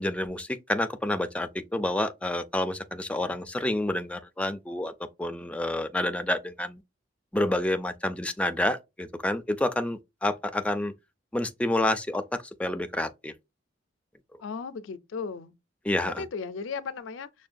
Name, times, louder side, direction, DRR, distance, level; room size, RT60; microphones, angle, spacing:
voice 1, 0.0-4.9 5.2-6.8 7.3-10.9 11.3-12.2 12.6-13.3 15.9-16.2, left 1 dB, 5° left, 0.3 m, -28 dB
voice 2, 14.4-15.6 16.2-17.5, left 5 dB, 80° left, 0.4 m, -36 dB
6.1 x 2.2 x 2.5 m
head